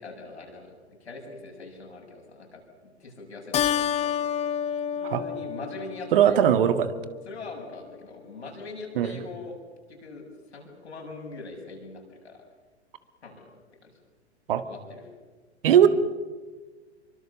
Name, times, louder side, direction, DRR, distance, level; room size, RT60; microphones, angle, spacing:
voice 1, 0.0-4.3 5.0-6.4 7.2-9.6 9.9-12.4 13.2-13.5 13.8-13.9 14.6-15.1, left 3 dB, 70° left, 1 dB, 7.7 m, -42 dB
Keyboard (musical), 3.5-6.4, left 9 dB, 20° left, 0.8 m, -28 dB
voice 2, 6.1-6.9 9.0-9.1 14.5-14.6 15.6-15.9, right 9 dB, 50° right, 10 dB, 1.8 m, -19 dB
28.0 x 24.0 x 7.1 m, 1.4 s
figure-of-eight pair, 100°, 34 cm